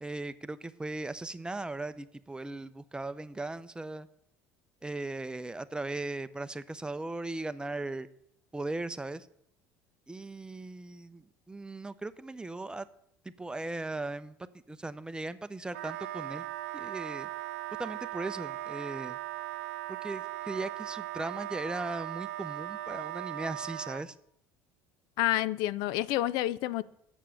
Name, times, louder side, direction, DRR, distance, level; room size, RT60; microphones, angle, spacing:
voice 1, 0.0-4.1 4.8-8.1 8.5-9.3 10.1-12.9 13.2-14.3 14.7-16.4 16.7-17.3 17.8-19.2 19.9-24.1, right 2 dB, 10° right, 13 dB, 0.6 m, -38 dB
Wind instrument woodwind instrument, 15.7-24.1, right 15 dB, 85° right, 0.4 m, -38 dB
voice 2, 25.2-26.8, left 14 dB, 70° left, 18 dB, 0.4 m, -29 dB
7.1 x 6.7 x 7.6 m, 0.72 s
hypercardioid pair, 80°, 7 cm